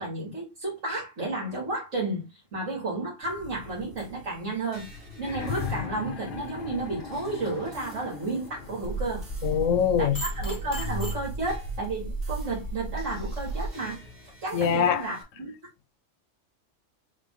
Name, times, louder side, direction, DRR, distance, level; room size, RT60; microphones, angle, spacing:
voice 1, 0.0-4.9 5.2-9.3 10.0-14.0 14.4-15.5, right 2 dB, 70° right, 2.3 m, -32 dB
sound 1, 3.2-15.2, equal, 45° right, 1.9 m, -46 dB
sound 2, 5.1-9.0 10.2-10.3, left 6 dB, 50° left, 0.8 m, -37 dB
sound 3, 8.8-13.7, right 2 dB, 15° left, 1.0 m, -34 dB
voice 2, 9.4-10.2 14.5-15.0, left 8 dB, 80° left, 1.0 m, -23 dB
3.7 x 3.5 x 3.7 m
omnidirectional pair, 1.3 m